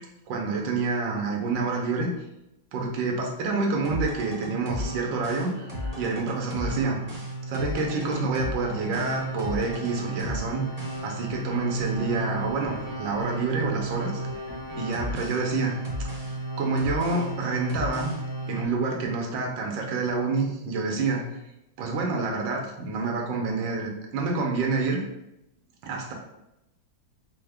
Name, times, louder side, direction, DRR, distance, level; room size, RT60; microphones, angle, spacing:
voice 1, 0.3-2.1 2.7-7.0 7.5-10.7 11.0-14.2 14.8-15.8 16.6-18.1 18.5-21.2 21.8-25.0 25.8-26.1, right 3 dB, 75° right, 1 dB, 1.4 m, -28 dB
sound 1, 3.8-18.6, right 1 dB, 55° right, 0.4 m, -33 dB
4.6 x 2.1 x 3.4 m, 0.88 s
omnidirectional pair, 2.1 m